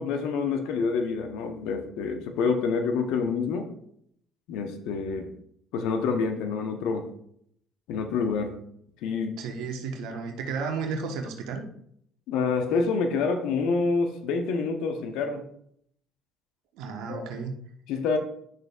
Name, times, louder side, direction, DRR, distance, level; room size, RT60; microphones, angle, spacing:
voice 1, 0.0-3.7 4.5-5.3 5.7-7.1 7.9-8.5 9.0-9.4 12.3-15.4 17.1-17.3 17.9-18.2, left 5 dB, 70° left, 6 dB, 0.9 m, -27 dB
voice 2, 9.4-11.6 16.8-17.5, right 5 dB, 70° right, 3 dB, 1.1 m, -33 dB
10.5 x 6.4 x 2.3 m, 0.68 s
hypercardioid pair, 55°, 0 cm